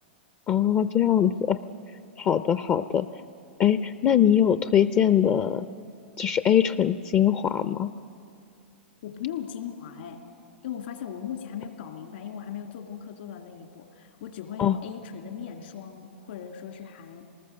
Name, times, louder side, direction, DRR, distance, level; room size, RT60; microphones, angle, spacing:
voice 1, 0.5-1.6 2.2-3.2 3.6-5.7 6.2-7.9 14.6-14.8, left 9 dB, 30° left, 12 dB, 0.5 m, -22 dB
voice 2, 9.0-10.2 10.6-17.3, left 9 dB, 65° left, 4 dB, 2.4 m, -38 dB
26.5 x 19.5 x 6.7 m, 2.6 s
hypercardioid pair, 115°, 6 cm